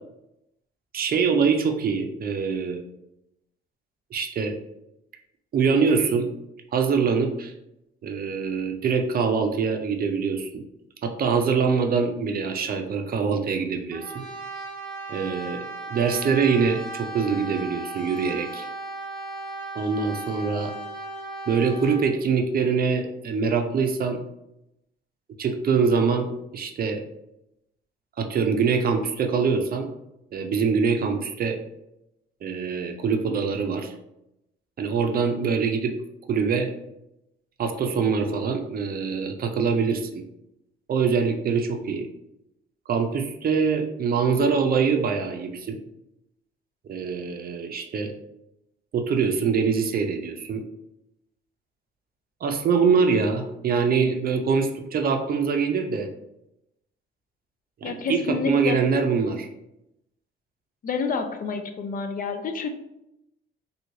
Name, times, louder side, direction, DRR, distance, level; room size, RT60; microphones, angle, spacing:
voice 1, 0.9-2.8 4.1-4.6 5.5-6.3 6.7-7.5 8.0-10.6 11.0-14.2 15.1-15.6 15.9-18.6 19.7-20.7 21.5-24.2 25.4-27.0 28.2-29.9 30.3-31.6 32.4-33.9 34.8-35.9 36.3-36.7 37.6-40.2 40.9-42.1 42.9-45.8 46.8-48.1 48.9-50.6 52.4-56.1 57.8-59.5, right 5 dB, 50° right, 4 dB, 0.5 m, -24 dB
Brass instrument, 13.9-22.1, right 2 dB, 5° left, 1.3 m, -36 dB
voice 2, 57.8-58.8 60.8-62.7, left 5 dB, 45° left, 6 dB, 0.4 m, -28 dB
3.0 x 2.7 x 2.6 m, 0.86 s
cardioid pair, 90°, 20 cm